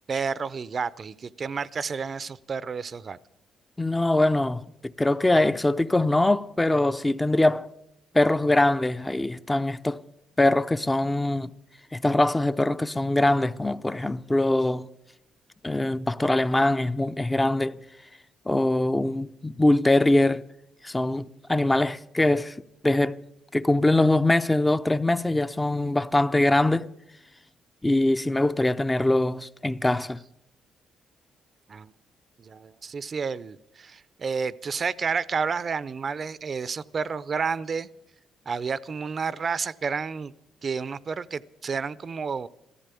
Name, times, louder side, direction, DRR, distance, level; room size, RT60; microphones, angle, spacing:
voice 1, 0.1-3.2 31.7-31.9 32.4-37.9 38.5-40.3 40.6-42.5, right 5 dB, 45° right, 0.5 m, -30 dB
voice 2, 3.8-7.7 8.1-10.0 10.4-11.5 11.9-14.9 15.6-17.8 18.5-20.4 20.8-22.6 22.8-23.2 23.5-26.9 27.8-30.2, left 2 dB, 15° left, 0.5 m, -23 dB
14.5 x 14.0 x 6.8 m
cardioid pair, 90°, 0 cm